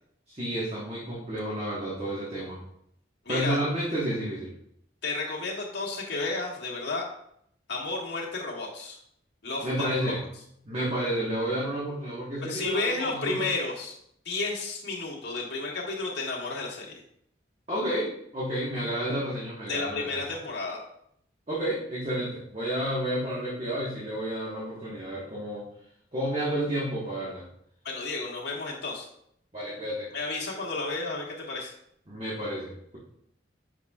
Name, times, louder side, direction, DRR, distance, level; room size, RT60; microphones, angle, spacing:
voice 1, 0.3-2.6 3.3-4.5 9.6-10.2 10.6-13.5 17.7-20.2 21.5-25.6 26.1-27.4 29.5-30.1 32.1-33.0, right 1 dB, 35° right, -6 dB, 1.3 m, -31 dB
voice 2, 3.2-3.6 5.0-7.0 7.7-9.0 9.4-9.7 10.0-10.1 12.4-13.9 14.2-17.0 19.7-20.8 27.8-29.1 30.1-31.7, left 3 dB, 70° left, -3 dB, 1.6 m, -32 dB
7.6 x 5.3 x 2.4 m, 0.71 s
head